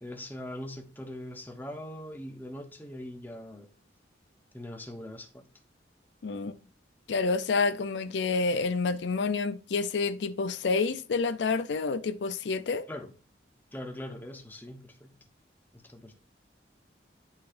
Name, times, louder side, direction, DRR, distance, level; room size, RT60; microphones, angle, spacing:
voice 1, 0.0-3.7 4.5-5.4 12.9-13.1 13.7-15.1 15.7-16.1, left 1 dB, 10° left, 0.8 m, -41 dB
voice 2, 6.2-6.6 7.1-12.9, left 4 dB, 75° left, 0.4 m, -28 dB
11.5 x 4.0 x 2.5 m
head